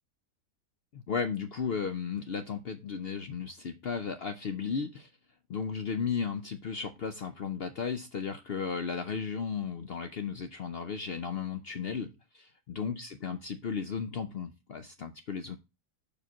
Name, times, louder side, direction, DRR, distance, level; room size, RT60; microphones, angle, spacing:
voice 1, 0.9-5.1 5.5-15.6, left 6 dB, 65° left, 0.6 m, -35 dB
5.1 x 4.8 x 5.9 m
omnidirectional pair, 1.7 m